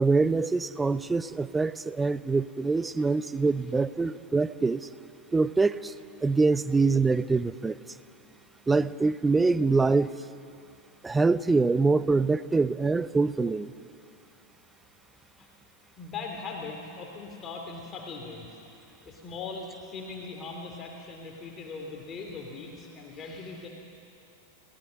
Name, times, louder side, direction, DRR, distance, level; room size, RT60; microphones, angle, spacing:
voice 1, 0.0-4.9 5.3-5.9 6.2-7.8 8.7-10.2 11.0-13.7, right 3 dB, 10° right, 16 dB, 0.6 m, -24 dB
voice 2, 16.0-18.5 19.0-23.7, left 4 dB, 25° left, 1 dB, 3.1 m, -40 dB
29.5 x 18.0 x 6.5 m, 2.7 s
figure-of-eight pair, 90°, 0 cm